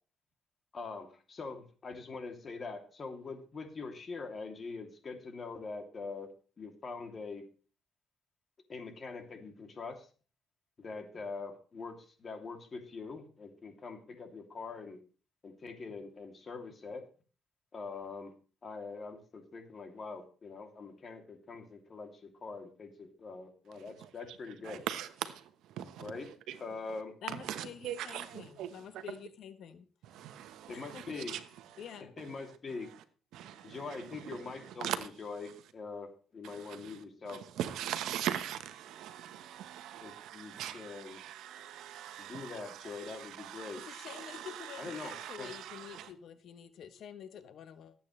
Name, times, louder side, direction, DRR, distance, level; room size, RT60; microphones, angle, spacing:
voice 1, 0.7-6.3 6.6-7.5 8.7-10.1 10.8-15.0 15.4-17.1 17.7-18.3 18.6-24.8 26.0-26.3 26.6-27.1 30.7-31.3 32.2-32.9 33.6-34.9 35.2-37.4 40.0-41.2 42.2-43.8 44.8-45.5, left 4 dB, 40° left, 2.8 m, -43 dB
voice 2, 23.7-24.4 24.6-27.0 27.3-29.0 30.0-33.0 33.3-35.1 35.4-35.6 36.4-46.1, right 11 dB, 85° right, 1.1 m, -42 dB
voice 3, 27.2-29.8 30.7-31.2 31.8-32.1 43.9-47.9, left 8 dB, 70° left, 1.0 m, -48 dB
19.0 x 8.5 x 3.2 m
cardioid pair, 90°, 0 cm